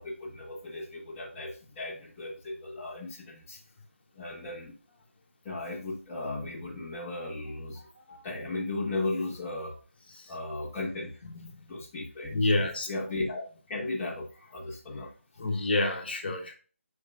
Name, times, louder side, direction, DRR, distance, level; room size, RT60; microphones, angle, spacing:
voice 1, 0.0-3.6 4.1-4.8 5.4-9.8 10.3-11.2 11.7-13.4 13.7-15.1 15.5-15.6, left 2 dB, 15° left, -6 dB, 1.1 m, -36 dB
voice 2, 12.3-12.9 15.4-16.5, left 2 dB, 45° left, 3 dB, 1.4 m, -28 dB
8.4 x 4.6 x 2.5 m, 0.37 s
figure-of-eight pair, 170°, 7 cm